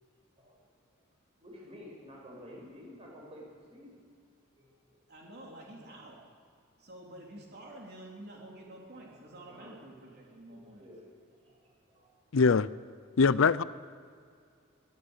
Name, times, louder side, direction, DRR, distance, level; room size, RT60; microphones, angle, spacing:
voice 1, 1.4-4.0 4.6-5.0 8.9-9.2 9.5-9.9 10.3-12.4, left 1 dB, 30° right, -2 dB, 7.6 m, -52 dB
voice 2, 5.1-6.2 6.8-10.9, right 1 dB, 50° right, -2 dB, 3.6 m, -49 dB
voice 3, 12.3-12.7 13.2-13.6, left 5 dB, 70° left, 17 dB, 0.5 m, -22 dB
24.5 x 14.0 x 8.2 m, 2.2 s
head